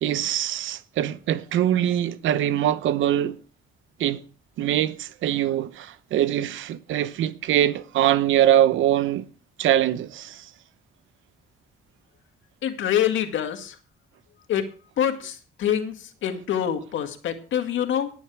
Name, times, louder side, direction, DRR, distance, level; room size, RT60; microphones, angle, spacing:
voice 1, 0.0-3.4 4.0-4.2 4.6-9.3 9.6-10.5, right 11 dB, 80° right, 0.9 m, -23 dB
voice 2, 12.6-13.8 14.5-18.1, left 9 dB, 75° left, 2.0 m, -26 dB
19.0 x 7.2 x 4.8 m
cardioid pair, 90°, 20 cm